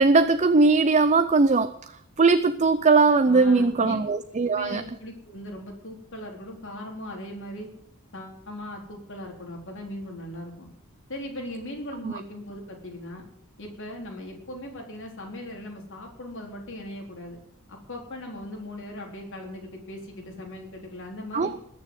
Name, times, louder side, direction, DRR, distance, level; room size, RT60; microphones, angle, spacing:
voice 1, 0.0-1.7 2.2-4.8 21.3-21.6, right 3 dB, 35° right, 11 dB, 0.6 m, -19 dB
voice 2, 3.3-4.0 4.5-7.7 8.1-10.7 11.1-13.3 13.6-17.4 17.7-21.5, left 1 dB, 60° left, 1 dB, 4.1 m, -39 dB
20.5 x 7.0 x 7.8 m, 0.71 s
head